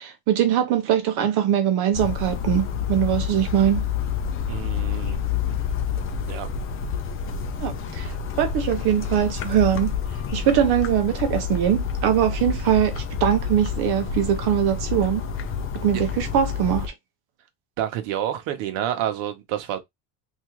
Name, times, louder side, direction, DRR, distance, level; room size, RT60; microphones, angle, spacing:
voice 1, 0.0-3.9 7.6-9.9 10.3-15.2 15.8-16.9, right 10 dB, 55° right, 0.9 m, -22 dB
sound 1, 1.9-16.9, left 7 dB, 30° left, 0.6 m, -28 dB
voice 2, 4.5-5.2 6.3-6.5 15.9-16.0 17.8-19.8, right 11 dB, 70° right, 1.1 m, -28 dB
3.6 x 2.8 x 3.0 m
cardioid pair, 155°, 47 cm